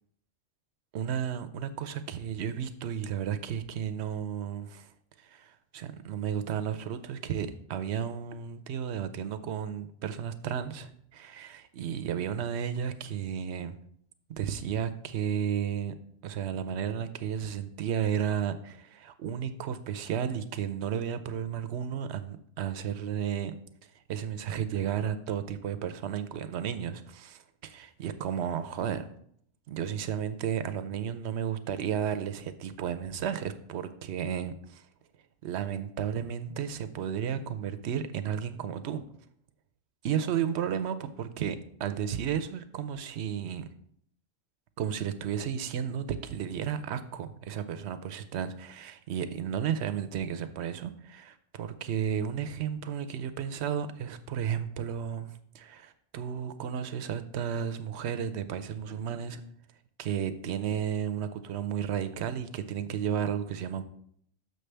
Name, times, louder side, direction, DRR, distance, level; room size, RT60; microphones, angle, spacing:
voice 1, 0.9-4.9 5.2-13.7 14.4-15.9 16.2-23.6 24.1-29.1 29.7-34.8 35.4-39.0 40.0-43.7 44.8-59.4 60.0-63.8, right 8 dB, 85° right, 11 dB, 0.9 m, -33 dB
6.6 x 6.5 x 3.3 m, 0.65 s
omnidirectional pair, 1.1 m